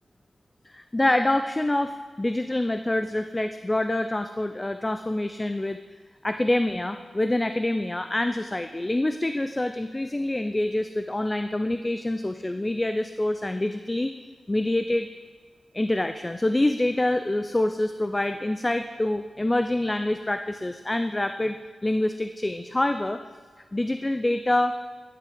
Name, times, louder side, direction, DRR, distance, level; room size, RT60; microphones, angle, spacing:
voice 1, 0.6-5.8 6.2-14.1 14.5-15.1 15.7-21.6 21.8-23.2 23.7-24.7, left 1 dB, 15° left, 8 dB, 0.3 m, -26 dB
11.5 x 7.4 x 3.8 m, 1.5 s
wide cardioid pair, 115°, 0 cm